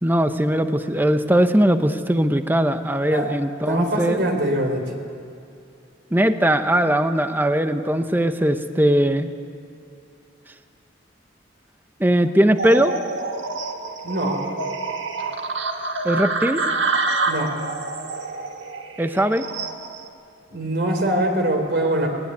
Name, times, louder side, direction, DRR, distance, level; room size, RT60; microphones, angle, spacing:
voice 1, 0.0-4.2 6.1-9.3 12.0-13.0 16.0-16.6 19.0-19.5, right 1 dB, 10° right, 8 dB, 0.8 m, -19 dB
voice 2, 3.7-4.8 14.0-14.4 17.3-17.5 20.5-22.1, right 1 dB, 60° right, 3 dB, 3.9 m, -23 dB
sound 1, 12.6-20.1, right 3 dB, 80° right, 1.8 m, -27 dB
20.0 x 19.5 x 9.6 m, 2.6 s
head